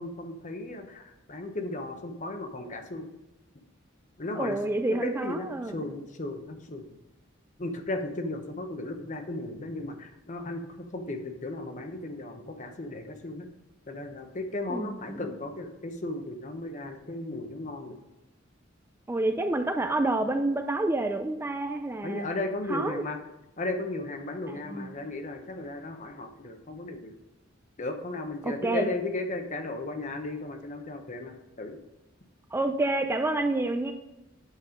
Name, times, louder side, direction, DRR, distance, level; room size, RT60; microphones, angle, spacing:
voice 1, 0.0-3.1 4.2-4.6 5.0-6.9 7.6-13.5 13.9-18.0 22.0-23.2 23.6-27.1 27.8-31.8, left 2 dB, 40° left, 6 dB, 0.9 m, -35 dB
voice 2, 4.3-5.9 14.7-15.3 19.1-22.3 22.7-23.1 24.5-24.9 28.4-28.9 32.5-33.9, right 2 dB, 10° right, 6 dB, 0.4 m, -28 dB
8.3 x 5.5 x 5.0 m, 0.98 s
head